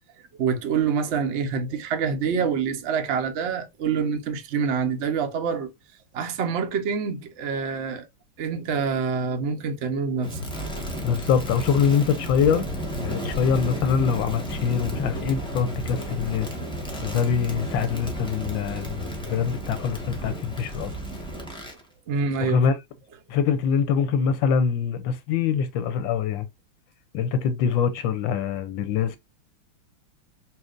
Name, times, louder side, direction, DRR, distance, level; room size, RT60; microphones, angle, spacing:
voice 1, 0.4-5.7 6.1-8.1 8.4-10.4 22.1-22.6, right 6 dB, 75° right, 0.6 m, -26 dB
Crackle, 10.2-21.8, right 1 dB, 5° left, 0.7 m, -32 dB
voice 2, 11.0-12.7 13.0-16.5 16.9-20.9 22.4-22.7 23.3-26.5 27.1-29.2, left 7 dB, 75° left, 1.2 m, -24 dB
5.7 x 2.7 x 2.4 m
omnidirectional pair, 2.3 m